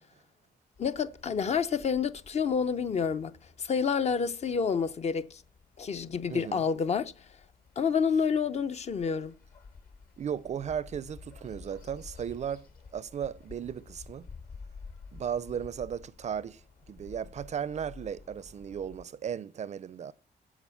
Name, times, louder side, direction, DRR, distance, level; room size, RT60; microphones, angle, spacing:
sound 1, 0.7-19.1, left 4 dB, 60° left, 2.2 m, -52 dB
voice 1, 0.8-5.4 5.8-7.1 7.8-9.3, left 6 dB, 40° left, 0.6 m, -29 dB
voice 2, 6.3-6.6 10.2-14.3 15.1-20.1, right 8 dB, 45° right, 0.4 m, -36 dB
14.5 x 5.0 x 7.0 m
wide cardioid pair, 160°, 17 cm